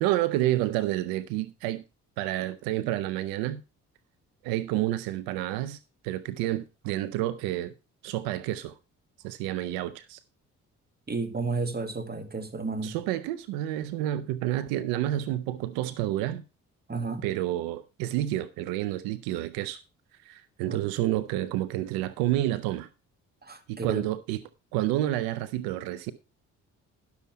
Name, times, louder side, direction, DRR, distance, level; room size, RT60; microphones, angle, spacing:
voice 1, 0.0-1.8 2.2-3.6 4.4-5.8 6.0-7.7 8.0-8.7 9.2-10.2 12.8-16.4 17.2-19.8 20.2-22.9 23.7-24.4 24.7-26.1, right 14 dB, 90° right, 0.6 m, -29 dB
voice 2, 11.1-13.0 16.9-17.3 20.7-20.9 23.4-24.1, right 4 dB, 30° right, 2.0 m, -32 dB
11.0 x 7.0 x 4.5 m
supercardioid pair, 55°, 34 cm